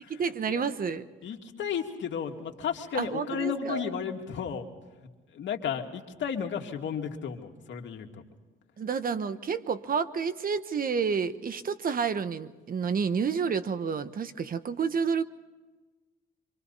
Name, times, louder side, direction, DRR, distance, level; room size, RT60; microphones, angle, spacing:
voice 1, 0.1-1.0 2.9-3.9 8.8-15.2, right 6 dB, 45° right, 12 dB, 1.2 m, -29 dB
voice 2, 1.2-4.7 5.3-8.2, left 7 dB, 70° left, 3 dB, 2.4 m, -33 dB
26.0 x 25.5 x 4.2 m, 1.3 s
cardioid pair, 90°, 20 cm